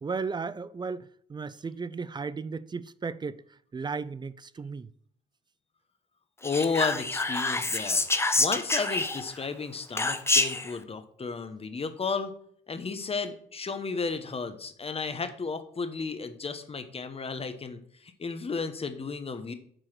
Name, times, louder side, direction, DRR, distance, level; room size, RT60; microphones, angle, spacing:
voice 1, 0.0-3.4 3.7-4.9, right 4 dB, 20° right, 0.4 m, -35 dB
voice 2, 6.4-8.0 8.4-12.3 12.7-19.5, left 4 dB, 30° left, 1.0 m, -33 dB
Whispering, 6.4-9.4 10.0-10.7, left 2 dB, 15° left, 0.7 m, -27 dB
7.6 x 4.7 x 6.0 m
cardioid pair, 90°, 20 cm